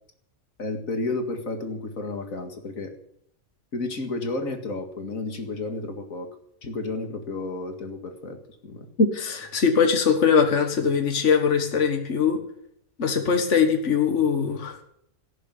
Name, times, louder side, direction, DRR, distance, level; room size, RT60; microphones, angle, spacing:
voice 1, 0.6-2.9 3.7-6.3 6.6-8.4 8.6-8.9, left 2 dB, 85° left, 5 dB, 2.4 m, -31 dB
voice 2, 9.0-12.4 13.0-14.8, left 6 dB, 60° left, 5 dB, 2.0 m, -21 dB
17.5 x 6.9 x 9.5 m, 0.72 s
omnidirectional pair, 1.4 m